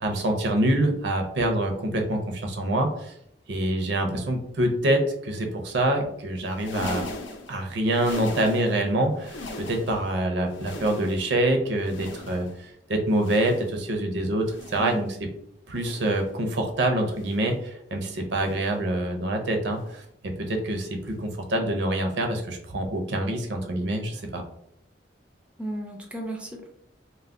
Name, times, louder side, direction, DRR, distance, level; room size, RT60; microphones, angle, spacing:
voice 1, 0.0-3.1 3.5-7.1 7.5-15.3 15.7-24.4, right 1 dB, 70° right, 3 dB, 0.5 m, -26 dB
sound 1, 6.5-8.9 9.1-10.1 10.4-11.4 11.8-12.7 13.1-13.9 14.4-15.1 15.7-16.3 17.0-17.6 18.4-18.8 19.7-20.0 21.0-21.2 22.4-22.5, left 2 dB, 80° left, 0.6 m, -40 dB
voice 2, 14.8-15.2 25.6-26.7, right 1 dB, 5° right, 1 dB, 0.4 m, -34 dB
2.3 x 2.1 x 3.5 m, 0.73 s
head